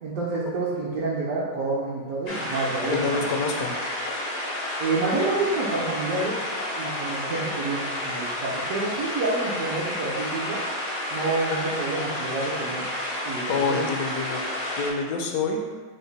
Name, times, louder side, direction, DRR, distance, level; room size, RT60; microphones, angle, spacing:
voice 1, 0.0-3.3 4.8-6.3 6.8-10.6 11.1-12.8 13.2-13.8, right 3 dB, 65° right, -7 dB, 1.0 m, -28 dB
sound 1, 2.3-14.9, left 1 dB, 90° left, 0.3 m, -31 dB
voice 2, 2.9-3.7 13.5-14.4 14.8-15.6, left 4 dB, 70° left, 2 dB, 0.9 m, -26 dB
5.1 x 2.1 x 3.9 m, 1.4 s
omnidirectional pair, 1.8 m